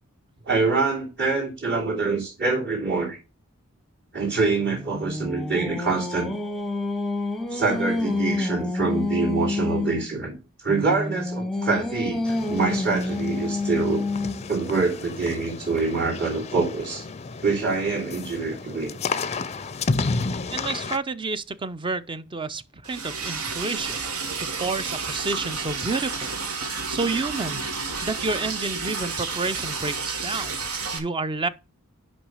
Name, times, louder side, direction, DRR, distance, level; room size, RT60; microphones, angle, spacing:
voice 1, 0.5-3.2 4.1-6.3 7.5-14.1 14.5-17.1 17.4-18.9, right 4 dB, 55° right, 3.0 m, -25 dB
Singing, 4.6-10.1 10.7-14.6, left 2 dB, ahead, 0.8 m, -28 dB
sound 1, 12.2-21.0, left 4 dB, 30° left, 0.5 m, -32 dB
voice 2, 20.5-24.0 24.4-26.3 26.9-27.6 28.0-30.5 30.9-31.5, right 3 dB, 25° right, 0.5 m, -29 dB
Liquid, 22.8-31.0, right 4 dB, 85° right, 1.5 m, -31 dB
6.0 x 5.5 x 6.4 m
head